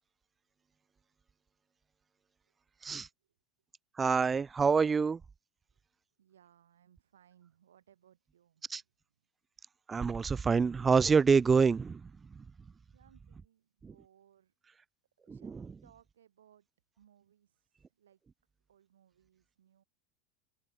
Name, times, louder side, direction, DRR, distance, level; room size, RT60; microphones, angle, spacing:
voice 1, 4.0-5.2 8.7-8.8 9.9-12.1 12.4-12.5 13.8-13.9 15.3-15.4, right 5 dB, 20° right, 0.3 m, -26 dB
voice 2, 6.2-8.9 12.9-14.5 15.2-16.7 17.0-18.2 18.7-19.8, right 10 dB, 70° right, 6.5 m, -65 dB
figure-of-eight pair, 85°, 0 cm